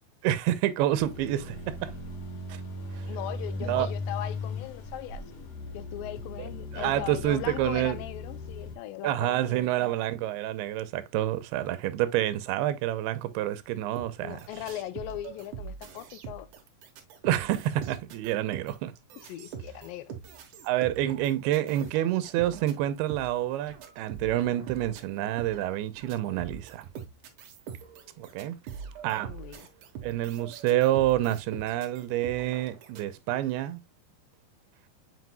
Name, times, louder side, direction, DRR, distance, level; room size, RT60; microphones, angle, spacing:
voice 1, 0.2-1.9 2.5-2.6 2.9-3.1 3.6-3.9 6.7-8.0 9.0-14.4 17.3-18.9 20.6-26.9 28.2-28.6 29.0-29.3 30.0-33.8, right 13 dB, 85° right, 2.7 m, -28 dB
sound 1, 1.0-8.7, left 2 dB, 65° left, 1.6 m, -38 dB
voice 2, 3.1-5.2 5.7-9.6 14.2-16.5 19.3-20.1 29.2-29.6, left 13 dB, 80° left, 2.1 m, -39 dB
sound 2, 14.0-33.0, right 6 dB, 65° right, 2.3 m, -43 dB
7.8 x 5.4 x 2.2 m
omnidirectional pair, 4.4 m